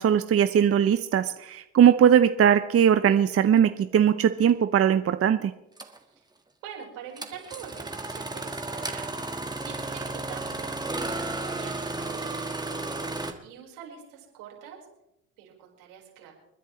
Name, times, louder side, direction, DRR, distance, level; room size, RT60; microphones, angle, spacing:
voice 1, 0.0-5.5, right 9 dB, 35° right, 11 dB, 0.7 m, -20 dB
Engine starting, 4.5-4.6 5.8-6.0 7.2-13.3, right 2 dB, 10° right, 1.6 m, -33 dB
voice 2, 6.6-9.1 9.6-12.9 13.4-14.8 15.4-16.3, right 8 dB, 80° right, -1 dB, 4.7 m, -44 dB
30.0 x 10.0 x 3.2 m, 0.90 s
hypercardioid pair, 70°, 39 cm